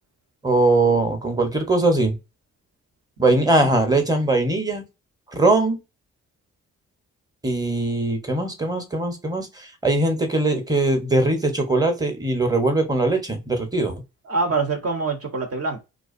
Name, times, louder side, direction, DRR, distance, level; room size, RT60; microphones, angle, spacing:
voice 1, 0.4-2.2 3.2-4.9 5.3-5.8 7.4-13.9, right 2 dB, 10° right, 0.9 m, -21 dB
voice 2, 3.3-3.7 14.2-15.8, right 4 dB, 45° right, 0.9 m, -25 dB
2.5 x 2.2 x 2.5 m
supercardioid pair, 55°, 33 cm